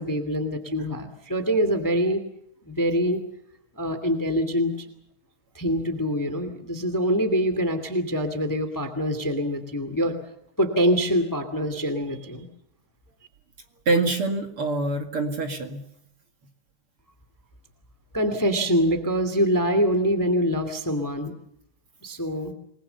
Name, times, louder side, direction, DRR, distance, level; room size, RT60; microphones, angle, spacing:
voice 1, 0.0-2.2 2.7-3.2 3.8-4.9 5.5-10.2 10.6-12.5 18.1-21.3 22.0-22.5, equal, 5° left, 9 dB, 1.9 m, -24 dB
voice 2, 13.9-15.8, right 2 dB, 45° right, 5 dB, 2.7 m, -25 dB
28.5 x 20.5 x 6.9 m, 0.72 s
omnidirectional pair, 3.6 m